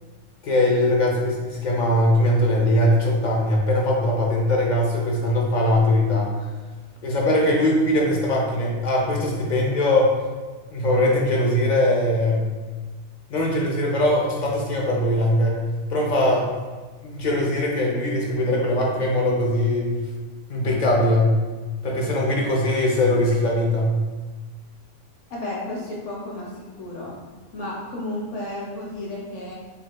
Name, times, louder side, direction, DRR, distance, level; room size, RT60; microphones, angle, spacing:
voice 1, 0.4-6.3 7.0-10.1 10.7-12.5 13.3-15.6 15.9-16.5 17.0-19.9 20.5-21.4 21.8-24.0, left 1 dB, 45° left, -2 dB, 0.6 m, -21 dB
voice 2, 25.3-27.2 27.5-29.6, left 1 dB, 70° left, -4 dB, 1.3 m, -32 dB
4.0 x 3.6 x 2.2 m, 1.3 s
omnidirectional pair, 1.3 m